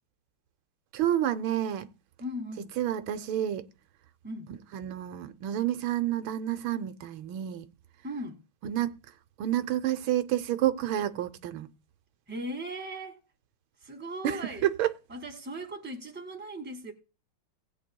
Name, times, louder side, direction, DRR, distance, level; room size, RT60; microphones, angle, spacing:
voice 1, 0.9-1.9 2.8-3.7 4.7-7.7 8.6-9.0 9.4-11.7 14.2-14.9, right 12 dB, 80° right, 1.5 m, -29 dB
voice 2, 2.2-2.7 4.2-4.5 8.0-8.4 12.3-13.3 13.8-14.7 15.1-16.9, right 1 dB, 5° right, 1.4 m, -38 dB
19.0 x 8.9 x 2.2 m
omnidirectional pair, 2.2 m